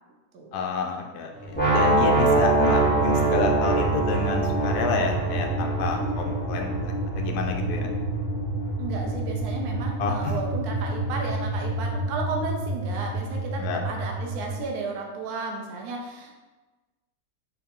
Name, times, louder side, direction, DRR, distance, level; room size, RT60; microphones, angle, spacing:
voice 1, 0.5-7.9 10.0-10.4 13.6-13.8, left 4 dB, 75° left, 3 dB, 1.0 m, -29 dB
sound 1, 1.3-14.6, right 2 dB, 20° right, 0.5 m, -30 dB
sound 2, 1.5-7.5, right 2 dB, 10° left, 0.8 m, -24 dB
voice 2, 8.8-16.4, right 3 dB, 70° right, 0 dB, 1.1 m, -33 dB
4.6 x 3.3 x 3.6 m, 1.2 s
omnidirectional pair, 1.8 m